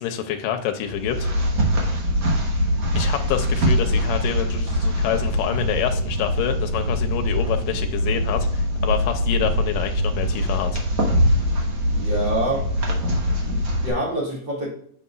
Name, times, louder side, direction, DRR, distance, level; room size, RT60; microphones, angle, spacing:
voice 1, 0.0-1.5 3.0-10.8, left 9 dB, 90° left, 6 dB, 2.3 m, -27 dB
sound 1, 0.8-13.9, equal, 55° right, 1.1 m, -23 dB
voice 2, 11.9-12.6 13.4-14.7, right 1 dB, 35° right, -5 dB, 2.6 m, -26 dB
7.4 x 5.6 x 2.3 m, 0.64 s
omnidirectional pair, 3.8 m